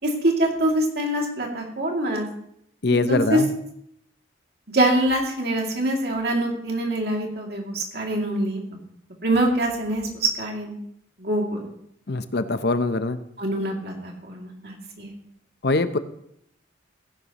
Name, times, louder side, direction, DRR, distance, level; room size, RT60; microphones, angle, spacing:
voice 1, 0.0-2.3 2.9-3.4 4.7-8.6 9.2-10.8 11.2-11.7 13.4-15.1, right 1 dB, 55° right, 0 dB, 2.5 m, -24 dB
voice 2, 2.8-3.5 12.1-13.2 15.6-16.0, left 2 dB, 55° left, 11 dB, 0.6 m, -22 dB
15.5 x 10.5 x 3.0 m, 0.72 s
head